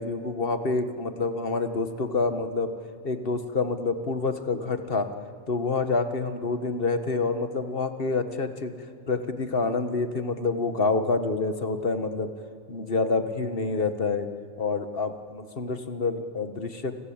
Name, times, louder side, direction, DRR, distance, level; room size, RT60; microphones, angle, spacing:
voice 1, 0.0-2.7 3.0-5.1 5.5-8.7 9.1-12.3 12.7-14.3 14.6-16.9, left 3 dB, 40° left, 9 dB, 1.7 m, -27 dB
29.0 x 21.5 x 8.8 m, 2.5 s
omnidirectional pair, 1.5 m